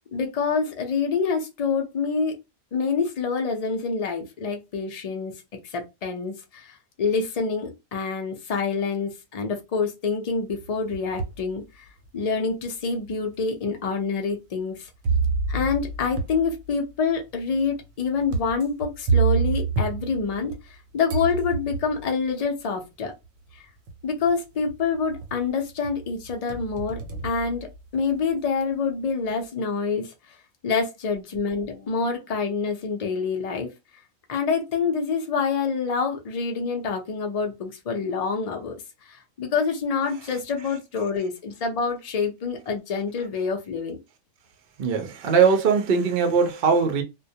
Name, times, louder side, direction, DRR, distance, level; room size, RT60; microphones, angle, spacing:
voice 1, 0.1-2.3 2.7-5.3 5.6-11.8 12.1-14.9 15.5-23.1 24.0-27.7 27.9-30.1 30.6-33.7 34.3-38.7 39.1-44.0, left 5 dB, 60° left, 0.4 m, -27 dB
sound 1, 10.6-11.5 12.1-12.2 13.1-13.2 15.0-20.8 21.1-22.1 23.2-23.3 23.9-24.3 24.7-25.5 25.8-28.2, right 5 dB, 85° right, 1.0 m, -28 dB
voice 2, 44.8-47.0, right 5 dB, 60° right, 0.6 m, -20 dB
2.2 x 2.1 x 2.7 m
omnidirectional pair, 1.4 m